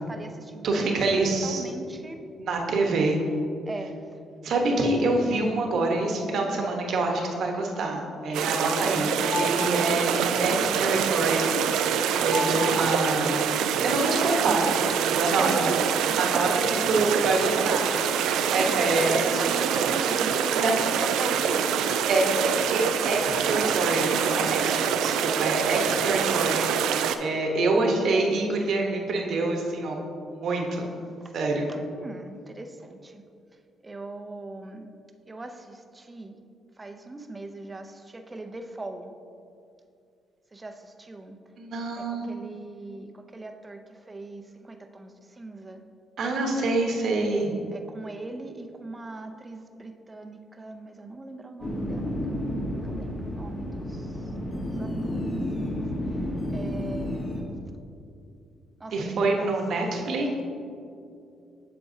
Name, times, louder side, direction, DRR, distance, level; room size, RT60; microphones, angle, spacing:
voice 1, 0.1-0.7 1.4-2.2 3.7-3.9 4.7-5.3 8.7-9.1 15.4-15.8 16.3-16.5 17.3-17.7 18.8-20.6 21.2-21.9 31.2-31.3 31.9-33.2 33.8-34.9 35.3-36.4 36.8-39.1 40.5-41.4 42.0-43.8 44.1-45.8 47.7-54.0 54.6-55.4 55.7-55.8 56.5-57.4 58.8-58.9 59.4-59.5 60.2-60.4, right 2 dB, 25° right, 6 dB, 0.5 m, -39 dB
voice 2, 0.6-1.6 2.4-3.2 4.4-11.5 12.2-13.5 13.8-14.7 15.0-15.5 16.2-18.0 18.5-19.4 20.5-20.7 22.1-26.7 27.2-30.0 30.3-30.9 31.3-31.7 41.6-42.2 46.2-47.5 58.9-60.4, right 2 dB, 65° right, 1 dB, 1.0 m, -26 dB
sound 1, 7.7-14.6, left 3 dB, 55° left, 0.7 m, -37 dB
sound 2, 8.3-27.2, right 8 dB, 90° right, 0.3 m, -25 dB
sound 3, 51.6-57.4, left 1 dB, 35° left, 1.3 m, -31 dB
8.0 x 6.8 x 2.7 m, 2.5 s
cardioid pair, 90°, 0 cm